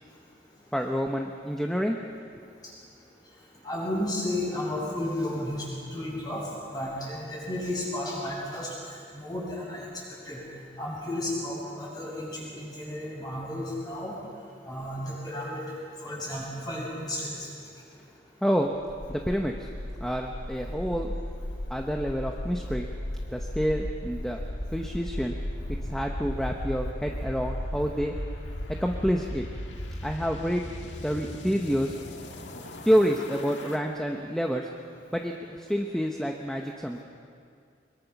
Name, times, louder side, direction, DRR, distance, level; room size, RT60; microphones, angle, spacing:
voice 1, 0.7-2.0 2.3-2.4 18.4-18.7 19.1-19.7 20.0-21.1 21.7-22.9 23.3-24.4 24.7-25.4 25.7-28.1 28.8-29.5 30.0-30.6 31.0-32.0 32.8-34.7 35.1-37.0, equal, 5° left, 2 dB, 0.9 m, -28 dB
voice 2, 3.6-5.6 5.9-6.4 6.7-8.7 9.1-9.9 10.2-10.4 10.8-14.1 14.6-15.6 16.0-17.5 20.7-20.8, left 1 dB, 20° left, -4 dB, 6.6 m, -33 dB
sound 1, 18.9-33.8, left 1 dB, 90° left, 1.8 m, -36 dB
23.0 x 22.0 x 6.0 m, 2.3 s
head